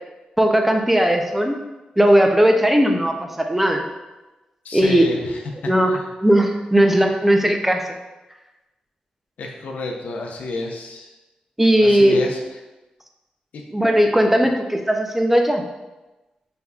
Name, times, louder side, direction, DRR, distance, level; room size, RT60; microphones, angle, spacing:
voice 1, 0.4-1.6 2.0-3.9 4.7-5.3 5.7-7.9 11.6-12.2 13.7-15.6, equal, 10° right, 3 dB, 0.5 m, -17 dB
voice 2, 4.6-5.4 5.9-6.1 9.4-11.1 11.8-12.4 13.5-13.6, left 2 dB, 75° left, 1 dB, 0.6 m, -29 dB
5.5 x 3.4 x 2.3 m, 1.1 s
cardioid pair, 80°, 3 cm